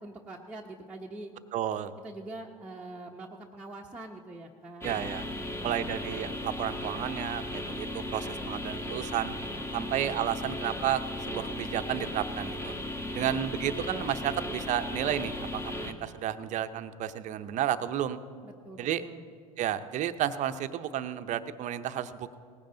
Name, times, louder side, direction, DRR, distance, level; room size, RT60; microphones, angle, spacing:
voice 1, 0.0-1.3 2.0-5.9 9.6-10.0 13.0-13.6 18.4-19.3, right 2 dB, 5° right, -3 dB, 1.0 m, -45 dB
voice 2, 1.5-1.9 4.8-5.2 5.6-9.3 9.7-11.0 11.3-12.7 13.1-18.2 18.8-19.0 19.6-22.4, right 10 dB, 40° right, 11 dB, 0.8 m, -32 dB
sound 1, 4.8-15.9, left 1 dB, 15° left, 1.5 m, -36 dB
19.0 x 15.5 x 3.9 m, 2.3 s
hypercardioid pair, 95°, 18 cm